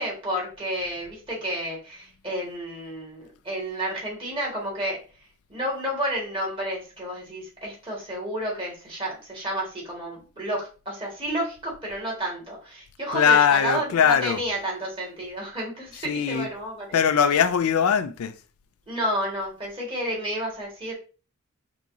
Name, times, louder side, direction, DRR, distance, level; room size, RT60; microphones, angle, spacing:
voice 1, 0.0-5.0 5.5-17.0 18.9-20.9, right 1 dB, 25° right, 1.9 m, -31 dB
voice 2, 13.1-14.4 16.0-16.5 16.9-18.3, left 7 dB, 85° left, 0.4 m, -21 dB
4.0 x 3.5 x 2.7 m
head